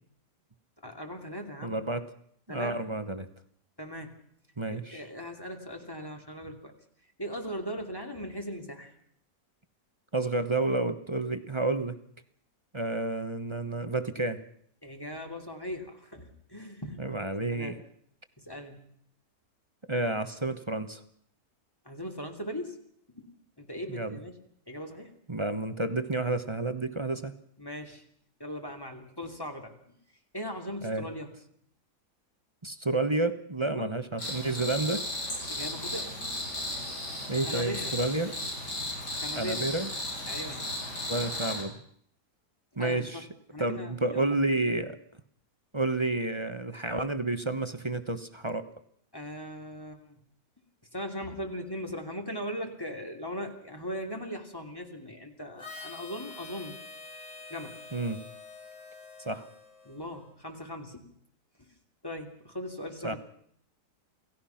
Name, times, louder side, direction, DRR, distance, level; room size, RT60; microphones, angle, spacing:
voice 1, 0.8-1.8 2.5-2.8 3.8-4.2 4.7-6.7 7.2-8.9 14.8-17.8 18.4-18.9 21.8-22.8 23.1-23.3 23.6-24.4 24.7-25.1 27.6-28.0 28.4-29.7 30.3-31.3 33.6-33.9 35.5-36.2 37.5-38.0 39.2-39.6 40.3-40.7 42.8-43.2 43.5-44.3 49.1-50.2 50.9-56.7 57.5-57.8 59.8-61.1 61.6-61.7 62.0-63.2, equal, 15° left, 3 dB, 2.9 m, -39 dB
voice 2, 1.6-2.0 2.5-3.3 4.6-5.0 10.1-12.0 12.7-14.4 17.0-17.8 19.9-21.0 23.9-24.2 25.3-27.3 30.8-31.1 32.6-35.1 37.3-38.3 39.3-39.9 41.1-41.7 42.8-43.2 43.6-45.0 45.7-48.7 57.9-58.2 59.2-59.5 63.0-63.2, right 2 dB, 20° right, 9 dB, 1.1 m, -30 dB
Cricket, 34.2-41.6, left 1 dB, 80° left, 8.4 m, -35 dB
Harmonica, 55.6-60.3, left 4 dB, 45° left, 2.9 m, -46 dB
28.5 x 17.5 x 5.9 m, 0.67 s
omnidirectional pair, 1.8 m